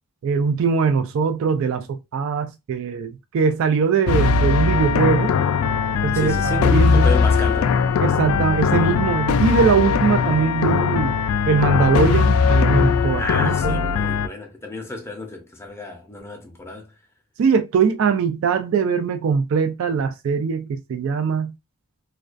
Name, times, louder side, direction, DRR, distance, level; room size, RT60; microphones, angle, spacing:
voice 1, 0.2-5.3 6.0-7.0 8.0-11.2 11.5-13.8 17.4-21.5, right 6 dB, 65° right, 0.3 m, -21 dB
sound 1, 4.1-14.3, left 5 dB, 85° left, 0.3 m, -19 dB
voice 2, 6.1-7.8 13.2-16.9, left 2 dB, 10° left, 0.5 m, -32 dB
2.3 x 2.2 x 2.4 m
head